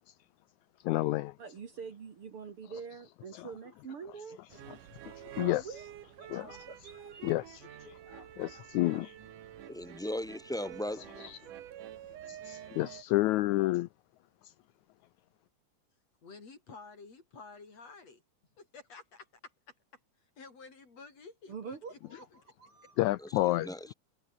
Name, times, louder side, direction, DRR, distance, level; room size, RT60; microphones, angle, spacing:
voice 1, 0.9-1.3 3.3-3.5 5.4-5.6 6.3-6.6 7.2-9.1 11.2-11.4 12.3-13.9 23.0-23.9, left 17 dB, 80° left, 1.9 m, -30 dB
voice 2, 1.4-4.4 5.3-5.8 6.2-7.3 21.5-22.3 22.6-23.0, right 6 dB, 50° right, 2.6 m, -45 dB
sound 1, 4.5-13.0, right 11 dB, 90° right, 3.2 m, -49 dB
voice 3, 9.7-11.0 23.2-23.9, left 1 dB, ahead, 5.0 m, -37 dB
voice 4, 16.2-18.2 18.6-19.5 20.4-22.2, left 4 dB, 55° left, 5.8 m, -51 dB
omnidirectional pair, 3.6 m